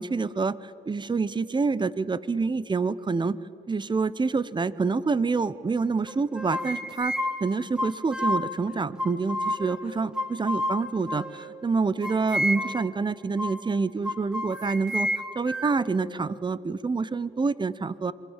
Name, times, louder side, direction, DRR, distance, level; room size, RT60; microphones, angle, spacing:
voice 1, 0.0-3.4 3.7-7.1 7.4-15.1 15.3-18.1, right 4 dB, 25° right, 18 dB, 0.9 m, -27 dB
sound 1, 6.1-8.6 9.0-9.8 10.1-11.5 12.0-12.9 13.4-13.6 14.0-15.9, left 1 dB, 5° right, 1.5 m, -30 dB
26.5 x 23.0 x 7.5 m, 2.6 s
cardioid pair, 90°, 20 cm